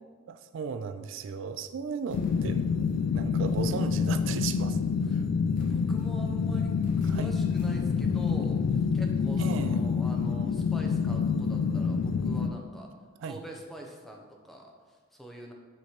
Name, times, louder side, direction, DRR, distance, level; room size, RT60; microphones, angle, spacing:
voice 1, 0.3-2.6 3.1-4.8 5.1-5.2 7.1-7.3 9.4-9.8 13.2-13.4, right 6 dB, 75° right, 10 dB, 0.3 m, -35 dB
sound 1, 2.1-12.5, left 5 dB, 85° left, 0.3 m, -27 dB
sound 2, 2.1-3.0 3.5-4.0 5.5-6.3 6.8-8.1, equal, 40° left, 1.3 m, -51 dB
voice 2, 5.6-12.9 13.2-15.5, right 1 dB, ahead, 0 dB, 0.6 m, -44 dB
8.1 x 3.1 x 4.4 m, 1.5 s
head